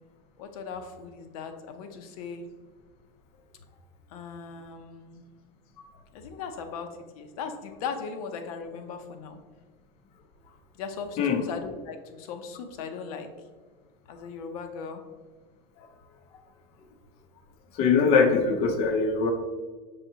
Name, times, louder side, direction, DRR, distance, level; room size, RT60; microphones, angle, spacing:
voice 1, 0.4-2.5 4.1-5.2 6.1-9.4 10.7-13.3 14.1-15.0, left 5 dB, 80° left, 6 dB, 0.6 m, -38 dB
voice 2, 17.7-19.3, left 5 dB, 35° left, 5 dB, 0.4 m, -22 dB
5.4 x 3.4 x 2.8 m, 1.4 s
cardioid pair, 170°, 18 cm